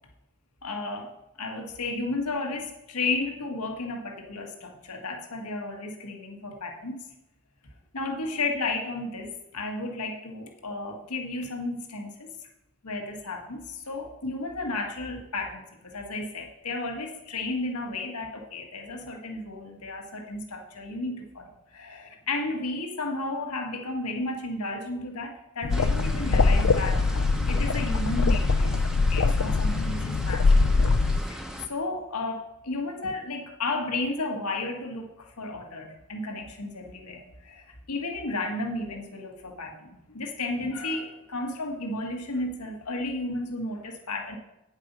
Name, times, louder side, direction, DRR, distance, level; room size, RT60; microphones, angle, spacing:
voice 1, 0.6-7.1 7.9-12.3 12.8-27.0 27.5-30.9 31.3-44.4, left 2 dB, 90° left, 2 dB, 1.7 m, -33 dB
sound 1, 25.6-31.2, left 3 dB, 70° left, 0.5 m, -23 dB
sound 2, 25.7-31.7, equal, 5° right, 0.8 m, -38 dB
9.4 x 8.1 x 5.5 m, 0.91 s
head